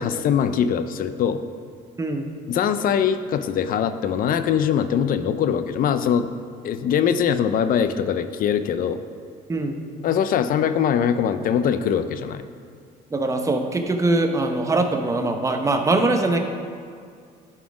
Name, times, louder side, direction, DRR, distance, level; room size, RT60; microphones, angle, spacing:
voice 1, 0.0-1.4 2.5-6.3 6.6-9.0 10.0-12.5, left 8 dB, 55° left, 11 dB, 0.5 m, -22 dB
voice 2, 2.0-2.3 9.5-9.8 13.1-16.4, right 2 dB, 20° right, 5 dB, 0.8 m, -22 dB
11.5 x 4.2 x 4.8 m, 2.2 s
cardioid pair, 110°, 17 cm